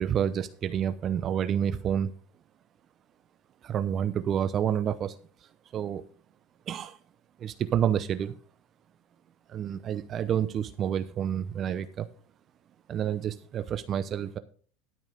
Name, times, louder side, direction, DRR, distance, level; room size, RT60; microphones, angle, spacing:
voice 1, 0.0-2.1 3.6-5.2 5.7-6.0 6.7-7.0 7.4-8.3 9.5-12.1 12.9-14.4, right 9 dB, 40° right, 12 dB, 0.7 m, -29 dB
12.5 x 5.3 x 5.2 m, 0.43 s
supercardioid pair, 110°, 0 cm